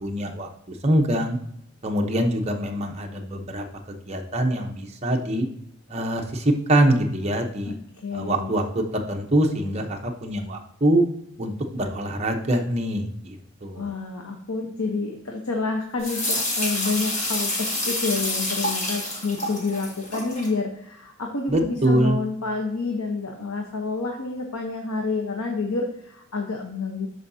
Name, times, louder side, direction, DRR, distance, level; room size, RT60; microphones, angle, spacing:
voice 1, 0.0-1.4 1.8-5.5 5.9-7.7 8.1-11.0 11.4-13.9 21.5-22.2, right 1 dB, 30° right, 2 dB, 0.8 m, -24 dB
voice 2, 8.0-8.6 13.7-27.1, left 3 dB, 90° left, 2 dB, 0.9 m, -29 dB
sound 1, 16.0-20.5, left 1 dB, 30° left, 1.7 m, -28 dB
11.5 x 4.8 x 2.7 m, 0.75 s
head